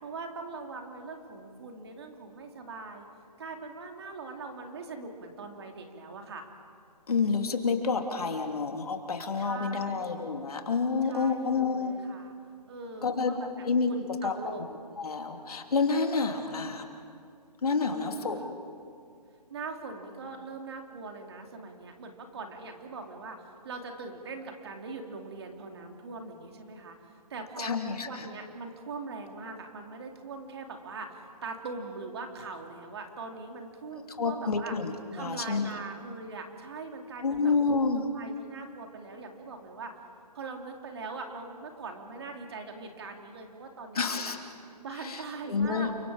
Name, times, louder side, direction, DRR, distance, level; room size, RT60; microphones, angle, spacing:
voice 1, 0.0-3.1 3.4-6.5 9.4-10.2 11.0-12.3 12.7-14.6 16.4-16.7 17.9-18.6 19.5-34.7 35.1-37.5 38.1-39.9 40.3-44.4 44.8-45.9, right 3 dB, 40° right, 3 dB, 2.8 m, -41 dB
voice 2, 7.1-11.9 13.0-13.3 13.6-13.9 14.2-14.3 15.0-16.9 17.6-18.4 27.6-28.3 34.2-35.7 37.2-38.1 43.9-44.4 45.0-45.2 45.5-45.9, left 4 dB, 65° left, 3 dB, 2.9 m, -28 dB
30.0 x 24.5 x 4.9 m, 2.3 s
hypercardioid pair, 165°, 21 cm